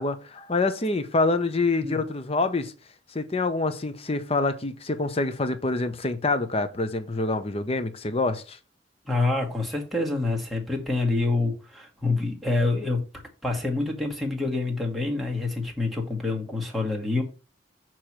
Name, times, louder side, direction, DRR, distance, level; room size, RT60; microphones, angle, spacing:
voice 1, 0.0-2.7 3.1-8.6, left 3 dB, 30° left, 0.7 m, -26 dB
voice 2, 9.0-13.0 13.4-17.2, left 3 dB, ahead, 1.3 m, -27 dB
6.5 x 3.0 x 5.9 m
head